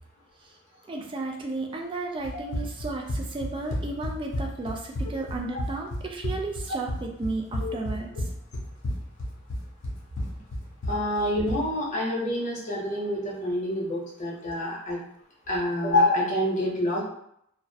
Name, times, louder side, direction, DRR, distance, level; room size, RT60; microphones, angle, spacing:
voice 1, 0.9-8.1, right 3 dB, 25° right, 1 dB, 0.3 m, -33 dB
Run, 2.2-11.7, left 1 dB, 70° left, 0.6 m, -32 dB
voice 2, 10.9-15.0 15.5-17.0, left 1 dB, 35° left, -5 dB, 0.7 m, -27 dB
2.4 x 2.0 x 2.6 m, 0.74 s
head